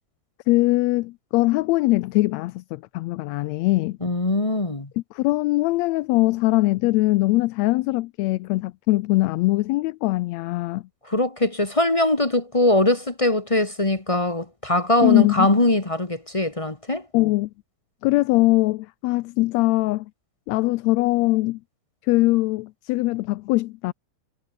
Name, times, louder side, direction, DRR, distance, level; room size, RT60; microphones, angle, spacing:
voice 1, 0.5-4.0 5.0-10.8 15.0-15.5 17.1-17.5 18.0-20.1 20.5-21.6 22.0-23.9, left 19 dB, 80° left, 1.7 m, -21 dB
voice 2, 4.0-4.9 11.1-17.0, left 2 dB, 20° left, 0.8 m, -21 dB
omnidirectional pair, 3.3 m